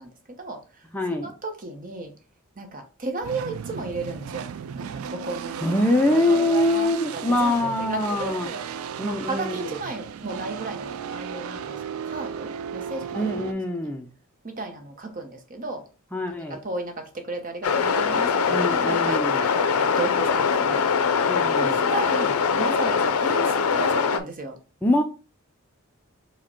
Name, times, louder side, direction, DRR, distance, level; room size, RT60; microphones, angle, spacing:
voice 1, 0.0-0.8 1.2-2.1 2.6-4.5 4.7-8.6 9.0-13.5 14.4-15.8 16.4-19.6 19.9-20.8 21.5-24.6, right 2 dB, 40° right, 0.8 m, -34 dB
voice 2, 0.9-1.3 5.6-8.5 9.0-9.7 13.1-14.1 16.1-16.6 18.5-19.4 21.3-21.8 24.8-25.0, left 1 dB, 10° left, 0.4 m, -24 dB
sound 1, 3.2-13.5, right 7 dB, 80° right, 0.3 m, -35 dB
sound 2, 17.6-24.2, left 6 dB, 90° left, 0.4 m, -22 dB
4.8 x 2.2 x 4.3 m
head